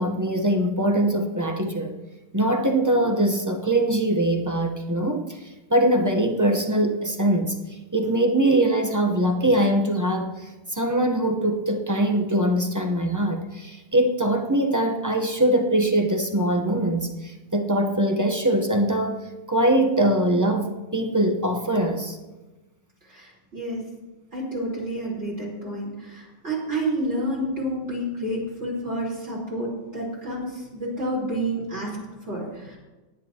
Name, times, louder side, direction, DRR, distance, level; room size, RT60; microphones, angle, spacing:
voice 1, 0.0-1.9 2.3-19.2 19.5-22.2, right 1 dB, 20° right, 3 dB, 0.5 m, -22 dB
voice 2, 23.0-23.9 24.3-32.0 32.2-32.8, right 1 dB, 35° right, -5 dB, 4.6 m, -29 dB
18.0 x 10.0 x 2.9 m, 1.1 s
omnidirectional pair, 1.9 m